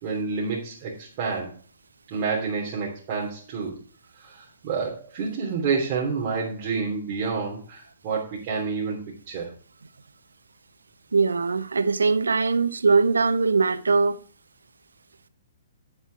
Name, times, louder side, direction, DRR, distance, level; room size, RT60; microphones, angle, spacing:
voice 1, 0.0-1.5 2.1-3.8 4.2-9.0 9.3-9.5, right 5 dB, 40° right, 3.3 m, -29 dB
voice 2, 11.1-14.2, right 4 dB, 75° right, 0.7 m, -21 dB
9.9 x 8.2 x 4.2 m
figure-of-eight pair, 120°, 0 cm